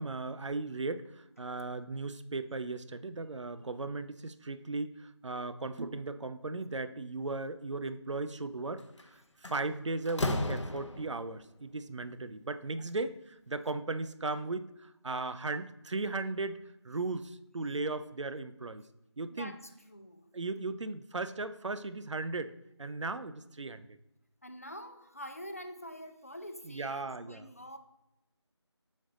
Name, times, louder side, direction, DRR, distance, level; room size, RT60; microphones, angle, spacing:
voice 1, 0.0-8.8 9.1-16.6 16.8-18.8 19.2-19.5 20.3-24.0 26.7-27.5, right 3 dB, 80° right, 12 dB, 0.5 m, -37 dB
Slam, 8.8-9.0 9.4-11.3, left 2 dB, 85° left, 0.8 m, -34 dB
voice 2, 19.3-20.3 24.4-27.8, equal, 30° left, 7 dB, 0.4 m, -46 dB
5.3 x 5.2 x 3.7 m, 0.90 s
figure-of-eight pair, 175°, 15 cm